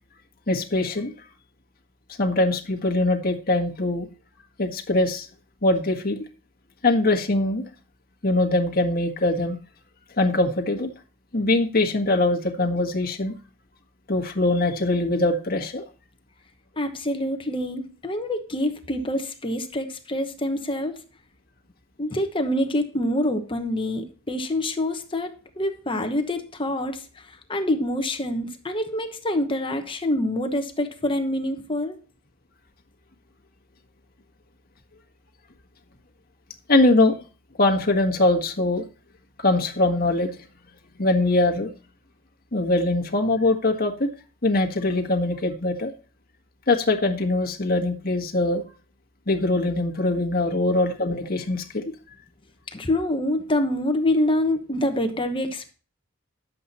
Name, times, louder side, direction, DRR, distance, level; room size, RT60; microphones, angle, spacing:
voice 1, 0.5-1.1 2.2-4.1 4.6-5.3 5.6-6.2 6.8-7.6 8.2-9.6 10.2-10.9 11.3-13.3 14.1-15.8 36.7-37.1 37.6-38.8 39.4-40.4 41.0-41.7 42.5-44.1 44.4-45.9 46.7-48.6 49.3-51.8, left 2 dB, 45° left, 2 dB, 1.6 m, -22 dB
voice 2, 16.8-20.9 22.0-32.0 52.7-55.7, left 1 dB, 25° left, 6 dB, 1.1 m, -26 dB
11.0 x 7.7 x 4.2 m, 0.38 s
head